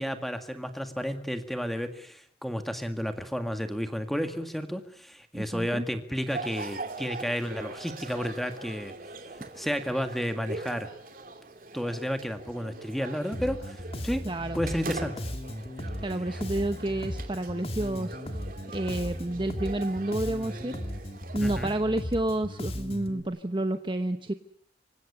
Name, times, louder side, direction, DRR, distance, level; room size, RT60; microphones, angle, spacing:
voice 1, 0.0-8.9 9.6-10.9 11.7-14.2 14.5-15.1 16.3-16.4 21.4-21.7, equal, ahead, 7 dB, 1.9 m, -32 dB
voice 2, 5.3-5.8 14.2-14.6 16.0-18.4 18.7-20.7 21.3-24.3, right 1 dB, 30° right, 8 dB, 0.9 m, -30 dB
sound 1, 6.3-21.8, right 3 dB, 50° right, 2.7 m, -42 dB
Bass guitar, 13.3-23.2, equal, 35° left, 2.2 m, -37 dB
26.5 x 16.0 x 9.7 m, 0.68 s
head